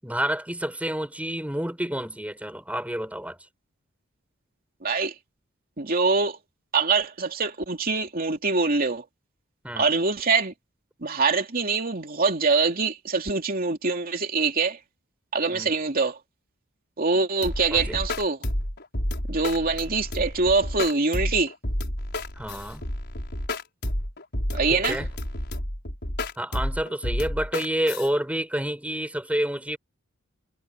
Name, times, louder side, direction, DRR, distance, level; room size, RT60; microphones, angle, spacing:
voice 1, 0.0-3.4 9.6-9.9 15.5-15.7 17.7-18.0 22.4-22.9 24.7-25.1 26.4-29.8, right 1 dB, 5° right, 7.1 m, -29 dB
voice 2, 4.8-5.1 5.8-6.4 6.7-9.0 9.8-10.5 11.0-14.8 15.3-16.1 17.0-18.4 19.3-21.5 24.5-25.0, right 4 dB, 45° right, 2.9 m, -24 dB
sound 1, 17.4-28.1, left 1 dB, 55° left, 5.8 m, -30 dB
head